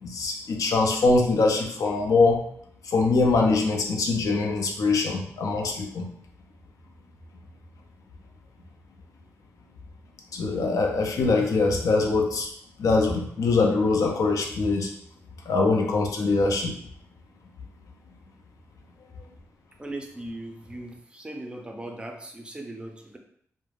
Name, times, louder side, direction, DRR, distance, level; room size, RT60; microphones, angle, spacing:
voice 1, 0.0-2.4 2.8-6.1 10.3-12.5 12.8-14.9 15.5-16.7, left 3 dB, 85° left, 1 dB, 0.5 m, -23 dB
voice 2, 19.8-23.2, right 1 dB, 15° right, 2 dB, 0.4 m, -38 dB
2.3 x 2.1 x 3.3 m, 0.66 s
wide cardioid pair, 115°, 6 cm